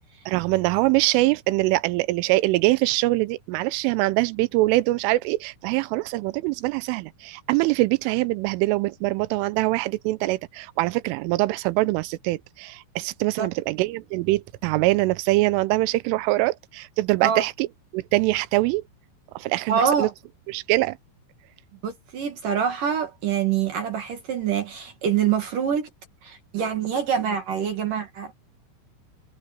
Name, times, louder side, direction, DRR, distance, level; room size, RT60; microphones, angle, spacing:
voice 1, 0.3-17.7 17.9-18.8 19.4-20.1 20.5-21.0, right 19 dB, 85° right, 3.3 m, -23 dB
voice 2, 19.7-20.1 21.8-25.9 26.2-28.3, right 8 dB, 55° right, 2.8 m, -25 dB
omnidirectional pair, 5.6 m